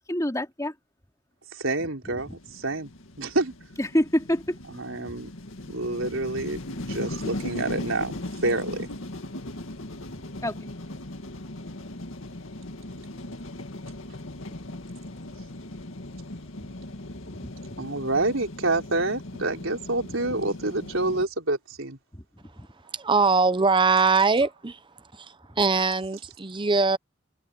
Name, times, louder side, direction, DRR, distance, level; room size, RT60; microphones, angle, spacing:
voice 1, 0.1-0.7 2.3-2.4 3.8-4.6 10.4-10.7 17.2-17.5 22.1-22.2 22.6-22.7, equal, 15° left, 3.1 m, -27 dB
voice 2, 1.5-2.9 3.2-3.5 4.7-5.3 5.7-8.2 8.4-8.9 17.8-22.0, right 2 dB, 80° right, 4.1 m, -28 dB
sound 1, 2.2-21.2, left 1 dB, 75° left, 2.1 m, -38 dB
voice 3, 22.9-24.8 25.1-27.0, right 4 dB, 25° right, 0.8 m, -22 dB
head